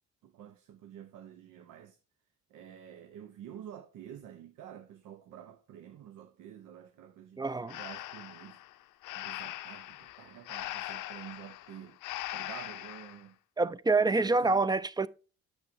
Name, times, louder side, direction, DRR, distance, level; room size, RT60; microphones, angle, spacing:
voice 1, 0.2-2.0 2.5-8.6 9.1-12.0 12.3-13.4 14.0-14.7, right 10 dB, 85° right, 0.7 m, -49 dB
voice 2, 7.4-7.8 13.6-15.1, right 3 dB, 15° right, 0.4 m, -27 dB
Breathing, 7.7-13.2, left 15 dB, 85° left, 0.5 m, -41 dB
8.5 x 6.4 x 2.6 m
cardioid pair, 90°, 30 cm